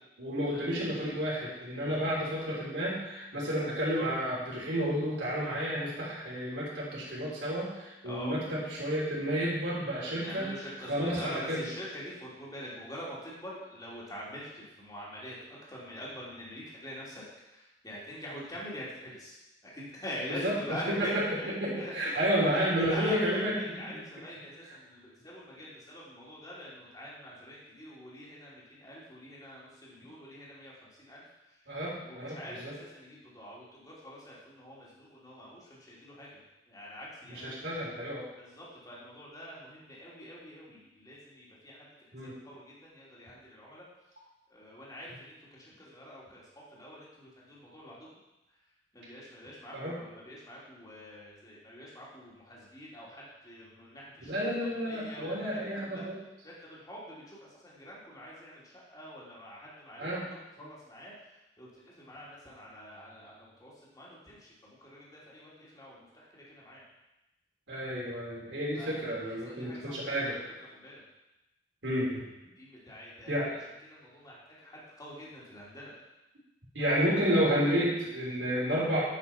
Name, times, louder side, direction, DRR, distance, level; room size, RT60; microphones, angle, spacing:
voice 1, 0.2-10.5 10.9-11.7 20.3-20.5 20.9-24.0 31.7-32.7 37.3-38.3 42.1-42.3 49.7-50.0 54.3-56.2 60.0-60.3 67.7-70.4 71.8-72.2 73.3-73.5 76.7-79.0, equal, 85° right, -6 dB, 3.3 m, -31 dB
voice 2, 8.0-8.4 10.0-15.4 15.7-17.2 17.5-19.4 19.6-31.3 32.0-36.4 36.7-37.5 38.4-41.9 42.2-43.9 44.5-46.4 46.7-48.1 48.9-54.4 54.8-56.1 56.4-61.1 61.6-66.8 68.7-70.4 70.7-71.0 72.6-73.6 73.9-76.0, equal, 20° left, -6 dB, 2.9 m, -45 dB
9.4 x 5.9 x 5.6 m, 0.96 s
head